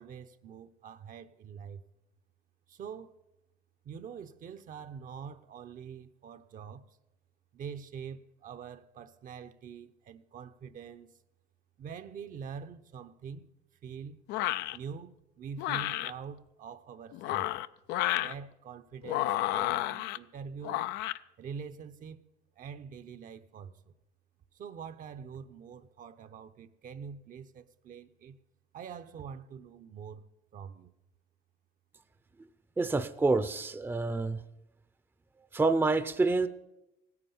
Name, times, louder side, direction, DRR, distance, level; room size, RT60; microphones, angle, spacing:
voice 1, 0.0-1.8 2.7-3.1 3.8-7.0 7.5-11.2 11.8-13.5 13.8-14.2 14.7-17.5 18.2-20.9 21.4-22.2 22.6-23.9 24.5-28.4 28.7-30.2 30.5-30.9, right 7 dB, 55° right, 0.7 m, -45 dB
sound 1, 14.3-14.8 15.6-16.1 17.1-18.3 19.0-20.2 20.6-21.2, left 15 dB, 90° left, 0.4 m, -31 dB
voice 2, 32.8-34.4 35.5-36.5, right 3 dB, 10° right, 0.6 m, -27 dB
16.5 x 9.6 x 7.0 m
cardioid pair, 110°, 17 cm